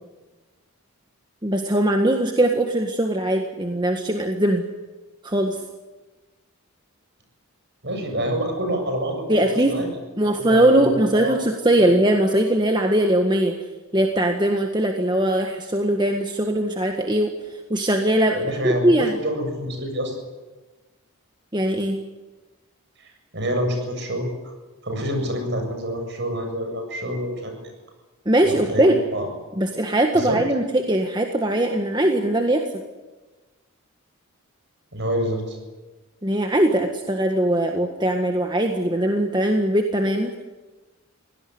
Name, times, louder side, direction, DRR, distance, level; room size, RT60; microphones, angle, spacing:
voice 1, 1.4-4.6 5.2-5.6 9.3-9.8 10.2-13.6 13.9-17.3 17.7-19.2 21.5-22.0 28.2-29.0 29.6-32.7 36.2-40.4, right 1 dB, 20° right, 3 dB, 1.7 m, -20 dB
voice 2, 7.8-9.9 10.2-11.3 11.8-11.9 18.3-20.2 23.0-24.5 24.8-27.7 28.4-29.3 30.1-30.4 34.9-35.6, equal, 55° right, 4 dB, 7.5 m, -27 dB
24.0 x 18.0 x 9.7 m, 1.2 s
head